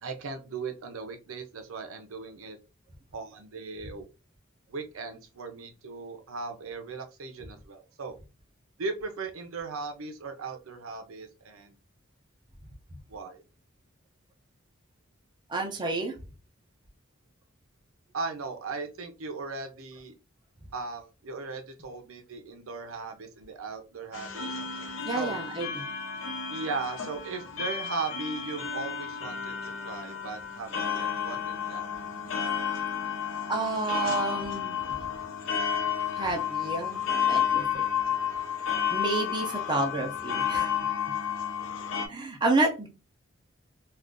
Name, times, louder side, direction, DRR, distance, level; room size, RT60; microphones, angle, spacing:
voice 1, 0.0-2.6 3.1-4.0 4.7-8.1 8.8-11.7 13.1-13.4 18.1-20.1 20.7-24.6 25.1-25.4 26.5-31.9, right 4 dB, 85° right, 6 dB, 0.6 m, -37 dB
voice 2, 15.5-16.2 25.0-25.7 33.5-34.8 36.1-37.6 38.9-40.7 42.1-42.9, right 2 dB, 20° right, 2 dB, 0.6 m, -29 dB
sound 1, 24.1-42.1, left 8 dB, 70° left, 0.7 m, -31 dB
2.5 x 2.4 x 3.6 m, 0.30 s
head